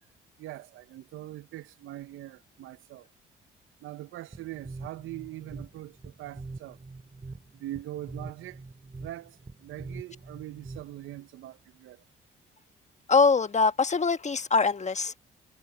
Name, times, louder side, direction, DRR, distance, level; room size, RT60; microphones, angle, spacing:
voice 1, 0.4-3.1 3.8-6.8 7.5-8.6 9.0-12.0, right 15 dB, 75° right, 0.9 m, -42 dB
sound 1, 4.3-11.2, right 3 dB, 25° right, 2.4 m, -44 dB
voice 2, 13.1-15.2, left 4 dB, 35° left, 1.6 m, -23 dB
supercardioid pair, 55°, 21 cm